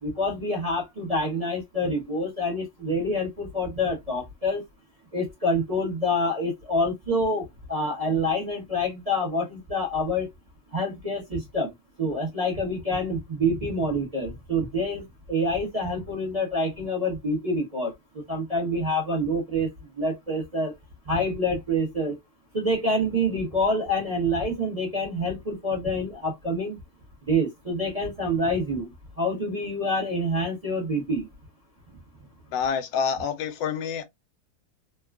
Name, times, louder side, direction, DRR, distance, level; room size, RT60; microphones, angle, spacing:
voice 1, 0.0-4.6 5.1-10.3 10.7-11.7 12.0-17.9 18.3-19.7 20.0-20.7 21.1-22.2 22.5-26.8 27.3-28.9 29.2-31.3, equal, 30° right, 0.8 m, -27 dB
voice 2, 32.5-34.0, left 6 dB, 90° left, 1.3 m, -27 dB
3.3 x 2.3 x 2.3 m
omnidirectional pair, 1.9 m